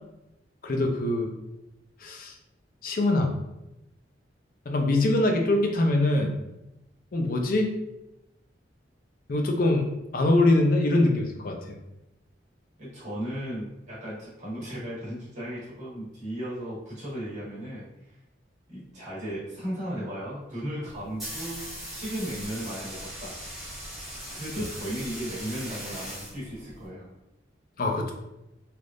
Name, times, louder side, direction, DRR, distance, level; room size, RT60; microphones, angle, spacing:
voice 1, 0.6-1.3 2.0-2.3 2.8-3.4 4.7-6.3 7.1-7.7 9.3-9.9 10.1-11.8 27.8-28.1, left 2 dB, 50° left, 2 dB, 0.4 m, -23 dB
voice 2, 12.8-17.9 18.7-23.4 24.3-27.1, equal, 40° right, -8 dB, 1.4 m, -35 dB
sound 1, 20.9-26.9, equal, ahead, 1.0 m, -39 dB
3.3 x 2.4 x 2.5 m, 0.92 s
head